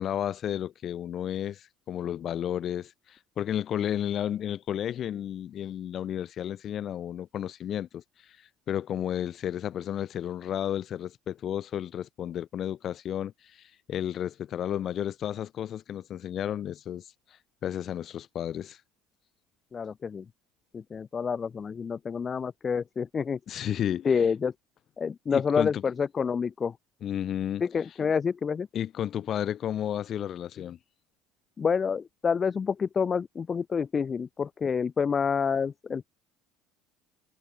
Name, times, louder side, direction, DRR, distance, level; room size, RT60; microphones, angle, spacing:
voice 1, 0.0-8.0 8.7-17.1 17.6-18.8 23.5-24.3 25.3-25.8 27.0-28.0 28.7-30.8, left 10 dB, 45° left, 1.9 m, -32 dB
voice 2, 19.7-20.2 20.9-23.4 24.0-24.5 25.0-25.7 26.0-26.7 27.7-28.7 31.6-36.1, left 6 dB, 30° left, 1.1 m, -28 dB
supercardioid pair, 100°, 0 cm